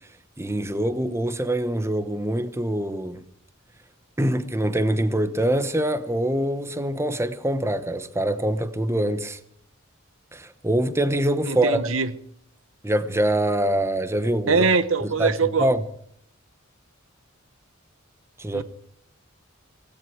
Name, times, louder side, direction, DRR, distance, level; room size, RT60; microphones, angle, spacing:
voice 1, 0.4-3.2 4.2-9.4 10.3-11.9 12.8-14.6 15.0-15.3 15.6-15.8 18.4-18.6, right 1 dB, 15° right, 1.0 m, -24 dB
voice 2, 11.5-12.1 14.5-15.7 18.5-18.6, right 4 dB, 75° right, 1.1 m, -22 dB
17.5 x 17.5 x 4.7 m
head